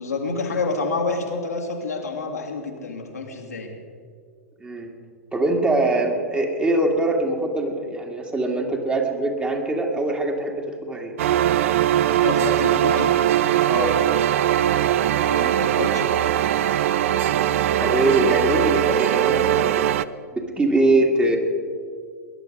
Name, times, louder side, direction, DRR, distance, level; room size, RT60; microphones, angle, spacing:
voice 1, 0.0-3.8 12.2-13.1 15.2-16.1 17.1-17.2, left 3 dB, 75° left, 1 dB, 2.3 m, -28 dB
voice 2, 5.3-11.1 13.6-13.9 17.8-19.9 20.3-21.4, right 2 dB, 10° right, 2 dB, 2.0 m, -22 dB
sound 1, 11.2-20.1, right 11 dB, 55° right, 0.5 m, -20 dB
20.5 x 11.0 x 5.3 m, 2.1 s
figure-of-eight pair, 95°, 9 cm